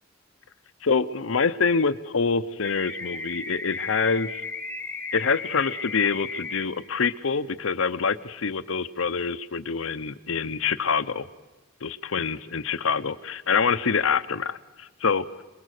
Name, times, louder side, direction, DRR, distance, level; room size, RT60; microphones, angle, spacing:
voice 1, 0.8-4.4 5.1-11.3 11.8-15.2, left 5 dB, 70° left, 12 dB, 0.8 m, -26 dB
sound 1, 2.6-6.6, left 3 dB, 5° left, 1.4 m, -35 dB
27.5 x 21.5 x 6.6 m, 1.1 s
head